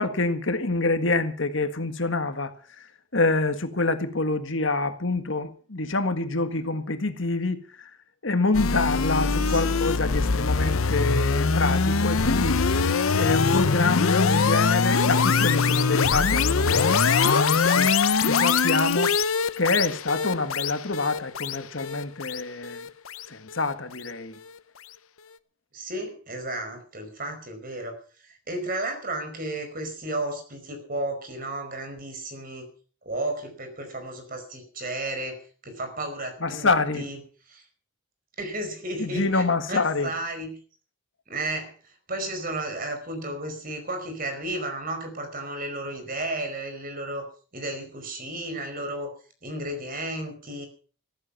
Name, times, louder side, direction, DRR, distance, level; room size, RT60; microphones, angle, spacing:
voice 1, 0.0-7.9 8.2-12.9 13.1-17.9 18.2-19.2 19.6-22.9 23.3-24.4 36.4-37.1 39.0-40.1, left 3 dB, 65° left, 1.7 m, -26 dB
sound 1, 8.5-23.7, left 5 dB, 90° left, 0.8 m, -23 dB
voice 2, 25.7-32.7 33.0-36.7 37.0-37.2 37.5-37.6 38.4-40.6 41.3-47.3 47.5-49.1 49.4-50.7, right 1 dB, 45° right, 4.9 m, -33 dB
14.5 x 14.5 x 5.8 m
head